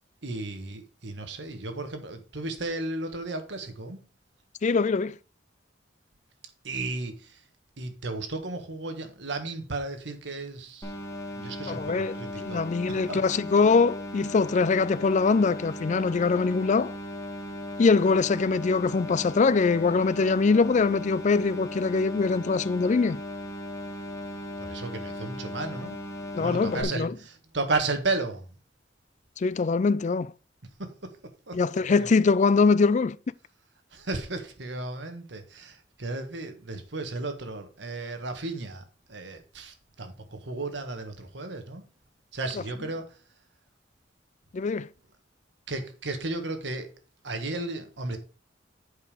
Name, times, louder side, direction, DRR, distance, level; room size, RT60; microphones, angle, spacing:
voice 1, 0.2-4.0 6.6-7.4 7.8-10.9 11.3-13.2 24.6-26.0 26.4-28.4 30.8-31.6 32.0-32.1 33.9-41.8 42.3-43.2 45.7-46.9 47.2-48.2, right 2 dB, 70° right, 1.5 m, -34 dB
voice 2, 4.6-5.1 11.7-16.9 17.8-23.2 26.3-27.1 29.4-30.3 31.5-33.2 44.5-44.9, left 4 dB, 40° left, 0.4 m, -23 dB
sound 1, 10.8-26.8, left 1 dB, 15° left, 1.9 m, -37 dB
8.3 x 5.3 x 4.9 m
head